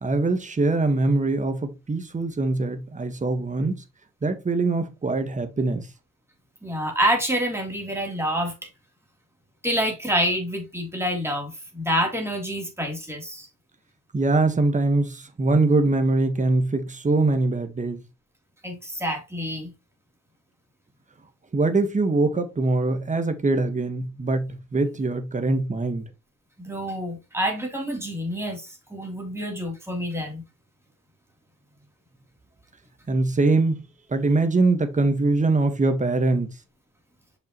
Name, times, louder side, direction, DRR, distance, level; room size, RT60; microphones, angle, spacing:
voice 1, 0.0-3.8 4.2-5.9 14.1-18.0 21.5-26.0 33.1-33.8 34.1-36.5, right 3 dB, 25° right, 1.6 m, -23 dB
voice 2, 6.6-8.7 9.6-13.5 18.6-19.7 26.6-30.4, equal, 10° right, 3.4 m, -27 dB
6.6 x 5.8 x 3.1 m
cardioid pair, 90°, 30 cm